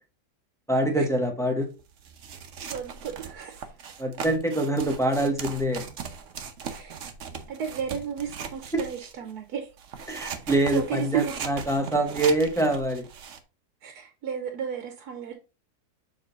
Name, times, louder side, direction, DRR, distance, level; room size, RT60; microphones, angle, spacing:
voice 1, 0.7-1.7 4.0-5.9 10.1-13.1, right 1 dB, ahead, 0.8 m, -25 dB
sound 1, 1.8-9.3 9.8-13.4, right 6 dB, 60° right, 1.0 m, -39 dB
voice 2, 2.7-3.8 6.7-7.0 7.5-9.7 10.7-11.3 13.8-15.3, right 8 dB, 75° right, 1.4 m, -33 dB
6.7 x 3.8 x 3.9 m
omnidirectional pair, 1.7 m